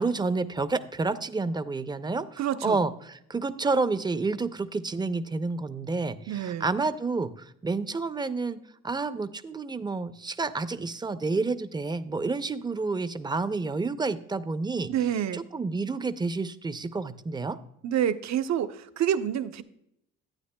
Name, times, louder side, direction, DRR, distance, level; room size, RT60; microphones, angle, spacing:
voice 1, 0.0-8.6 8.8-14.9 15.3-17.6, right 3 dB, 15° right, 12 dB, 0.5 m, -29 dB
voice 2, 2.4-2.8 6.3-6.7 14.9-15.4 17.8-19.6, right 10 dB, 65° right, 10 dB, 0.7 m, -27 dB
11.5 x 9.0 x 2.2 m, 0.76 s
cardioid pair, 90°, 30 cm